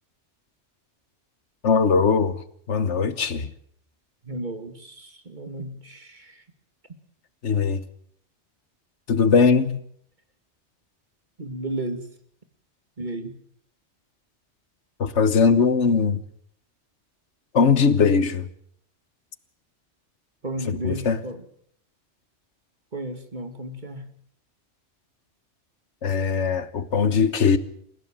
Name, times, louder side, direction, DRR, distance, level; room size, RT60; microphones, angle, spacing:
voice 1, 1.6-2.4 2.7-3.5 7.4-7.8 9.1-9.8 15.0-16.2 17.5-18.5 20.7-21.2 26.0-27.6, left 5 dB, 80° left, 1.6 m, -20 dB
voice 2, 4.2-6.4 11.4-12.1 13.0-13.4 20.4-21.5 22.9-24.1, right 1 dB, 40° right, 2.3 m, -33 dB
29.0 x 16.0 x 7.4 m
omnidirectional pair, 1.2 m